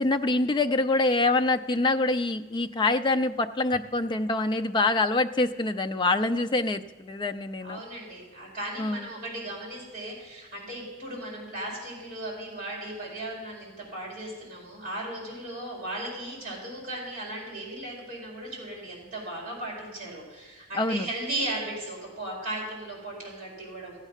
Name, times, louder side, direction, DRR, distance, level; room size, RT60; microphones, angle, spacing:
voice 1, 0.0-7.8 8.8-9.1 20.8-21.1, left 2 dB, 20° left, 8 dB, 0.3 m, -25 dB
voice 2, 7.6-24.0, right 1 dB, 35° right, -3 dB, 4.3 m, -36 dB
14.5 x 8.0 x 5.7 m, 1.2 s
head